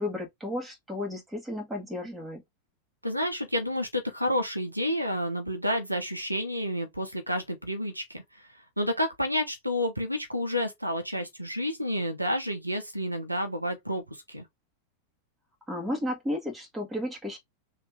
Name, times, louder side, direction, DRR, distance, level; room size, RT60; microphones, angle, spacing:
voice 1, 0.0-2.4 15.7-17.4, left 1 dB, 10° right, 1.9 m, -33 dB
voice 2, 3.0-8.5 8.8-14.4, equal, 85° right, 0.9 m, -30 dB
3.4 x 3.1 x 3.4 m
figure-of-eight pair, 90°, 0 cm